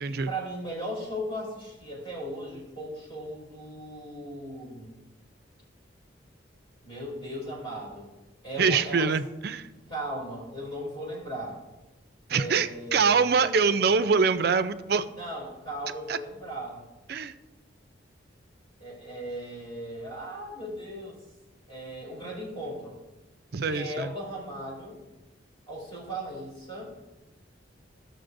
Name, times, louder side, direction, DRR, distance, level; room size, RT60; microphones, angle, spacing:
voice 1, 0.1-5.0 6.8-8.1 8.4-9.1 9.9-11.6 12.3-13.9 15.2-16.9 18.8-21.2 21.7-22.9 23.7-25.1 25.7-26.9, right 1 dB, 25° left, -4 dB, 3.0 m, -37 dB
voice 2, 8.6-9.7 12.3-15.1 16.1-16.2 17.1-17.3 23.5-24.1, right 5 dB, 55° right, 12 dB, 0.4 m, -24 dB
14.5 x 6.5 x 2.6 m, 1.1 s
head